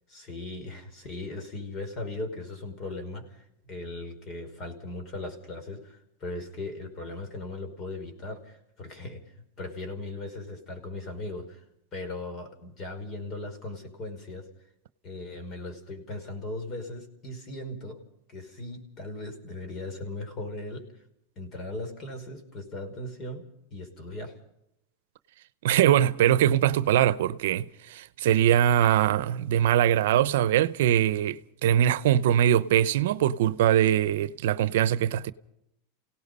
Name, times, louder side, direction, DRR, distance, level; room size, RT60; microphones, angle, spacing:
voice 1, 0.1-9.2 9.6-11.6 11.9-14.5 15.0-18.0 18.3-20.9 21.4-24.3, left 2 dB, 35° left, 5.1 m, -38 dB
voice 2, 25.6-35.3, right 11 dB, 75° right, 0.7 m, -22 dB
28.0 x 17.5 x 5.5 m
supercardioid pair, 135°, 0 cm